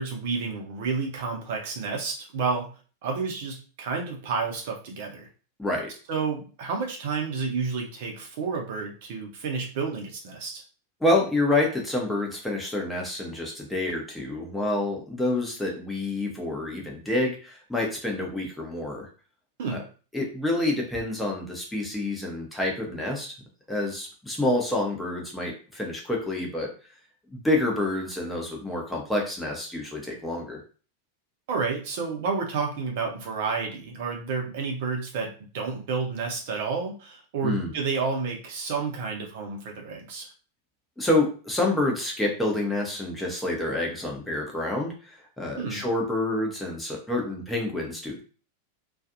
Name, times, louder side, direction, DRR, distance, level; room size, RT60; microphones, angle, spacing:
voice 1, 0.0-2.7 3.0-5.2 6.1-10.6 19.6-19.8 31.5-40.3 45.6-45.8, right 4 dB, 50° right, 1 dB, 0.7 m, -30 dB
voice 2, 5.6-5.9 11.0-19.1 19.7-19.8 20.1-23.3 23.7-26.7 27.3-30.6 37.4-37.7 41.0-48.2, left 2 dB, 5° left, -1 dB, 0.8 m, -28 dB
2.5 x 2.4 x 2.6 m, 0.38 s
figure-of-eight pair, 90°, 0 cm